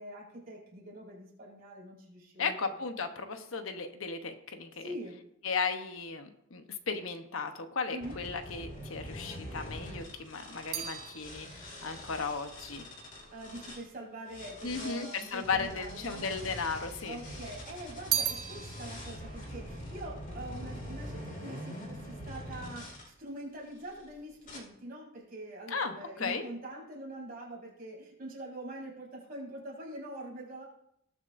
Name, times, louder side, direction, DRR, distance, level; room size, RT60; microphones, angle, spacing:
voice 1, 0.0-2.7 4.8-5.2 7.9-8.2 13.3-16.3 17.0-30.6, right 1 dB, 45° right, -4 dB, 4.7 m, -44 dB
voice 2, 2.4-4.9 5.4-12.9 14.6-17.2 25.7-26.4, left 5 dB, 70° left, 7 dB, 0.9 m, -35 dB
sound 1, 8.0-13.8 14.3-23.1 23.7-24.0 24.4-24.6, equal, 40° left, 2.4 m, -44 dB
sound 2, 9.7-14.2 15.0-15.8 16.0-17.2 17.5-21.0 21.3-21.8, right 11 dB, 80° right, 0.9 m, -39 dB
20.0 x 7.3 x 2.6 m, 0.76 s
head